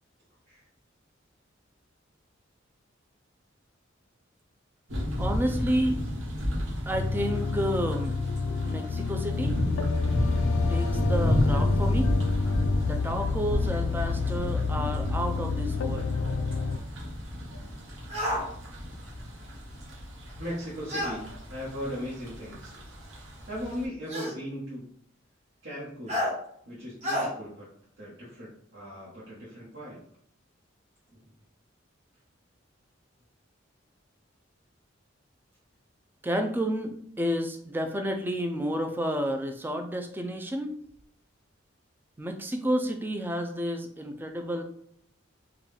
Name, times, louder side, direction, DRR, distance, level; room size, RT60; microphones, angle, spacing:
sound 1, 4.9-23.9, left 1 dB, 85° right, 1.1 m, -32 dB
voice 1, 5.2-6.0 6.9-8.1 8.6-9.5 10.7-12.1 12.8-16.1 36.2-40.8 42.2-44.6, equal, 10° right, 5 dB, 0.3 m, -30 dB
sound 2, 6.9-16.8, left 4 dB, 80° left, 0.3 m, -29 dB
sound 3, 18.1-18.4 20.9-21.2 22.4-22.5 24.1-24.4 26.1-26.3 27.0-27.3, left 1 dB, 35° right, 1.1 m, -29 dB
voice 2, 20.4-22.7 23.5-24.9 25.6-26.3 26.7-30.0, equal, 65° right, -8 dB, 1.1 m, -38 dB
3.7 x 2.3 x 3.3 m, 0.67 s
head